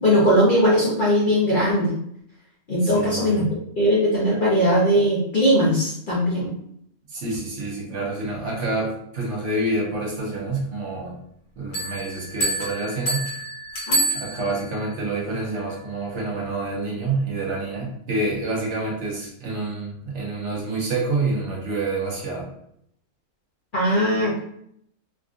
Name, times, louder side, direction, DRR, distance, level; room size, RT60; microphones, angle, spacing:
voice 1, 0.0-1.9 2.7-3.4 3.8-6.5 13.9-14.0 23.7-24.4, equal, 45° left, -6 dB, 0.7 m, -19 dB
voice 2, 2.8-3.4 7.1-11.2 11.6-13.3 14.1-22.5, right 2 dB, 55° right, -3 dB, 1.1 m, -27 dB
sound 1, 11.7-14.8, right 2 dB, 80° left, 1.5 m, -27 dB
3.6 x 2.4 x 2.4 m, 0.72 s
omnidirectional pair, 1.5 m